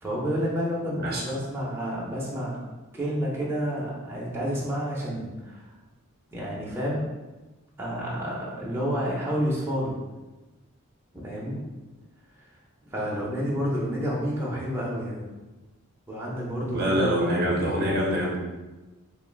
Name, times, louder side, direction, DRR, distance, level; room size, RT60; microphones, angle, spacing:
voice 1, 0.0-2.6 2.9-5.6 6.3-7.0 7.8-10.0 11.2-11.6 12.8-15.2 16.1-17.0 17.2-17.5, equal, 10° right, -6 dB, 0.7 m, -29 dB
voice 2, 16.7-18.4, equal, 45° right, -3 dB, 0.7 m, -25 dB
3.0 x 2.6 x 3.9 m, 1.1 s
head